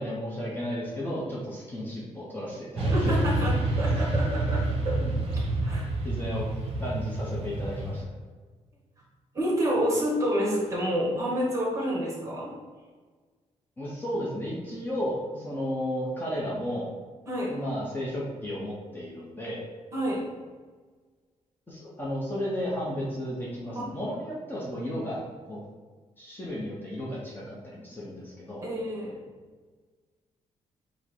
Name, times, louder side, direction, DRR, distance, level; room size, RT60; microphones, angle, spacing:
voice 1, 0.0-3.2 5.0-5.1 5.7-5.8 6.0-6.5 6.8-8.1 13.8-16.9 17.5-19.7 21.7-25.7 26.2-28.6, equal, 15° left, -6 dB, 0.8 m, -33 dB
Motorcycle / Traffic noise roadway noise, 2.8-8.0, right 2 dB, 50° right, 0.8 m, -28 dB
voice 2, 2.9-5.0 5.2-5.9 9.3-12.5 17.3-17.5 19.9-20.2 23.7-23.8 28.6-29.1, equal, 25° right, -4 dB, 1.3 m, -28 dB
4.8 x 2.1 x 4.4 m, 1.4 s
cardioid pair, 135°, 13 cm